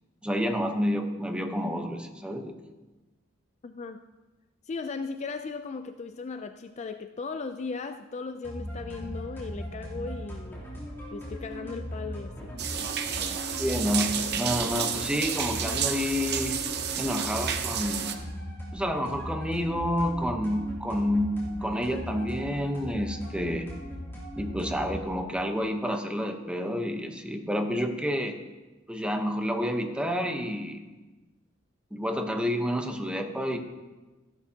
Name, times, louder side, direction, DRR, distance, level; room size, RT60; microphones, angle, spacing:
voice 1, 0.2-2.6 13.6-16.6 17.0-18.2 18.7-23.7 24.4-28.4 28.9-30.8 31.9-33.6, equal, 5° right, 4 dB, 0.9 m, -29 dB
voice 2, 3.6-4.0 4.7-10.6 11.1-12.9 13.2-13.4, left 4 dB, 35° left, 8 dB, 0.4 m, -37 dB
sound 1, 8.4-25.1, equal, 10° left, 3.2 m, -39 dB
sound 2, 12.6-18.1, right 8 dB, 55° right, 0.8 m, -31 dB
15.0 x 11.5 x 2.9 m, 1.2 s
head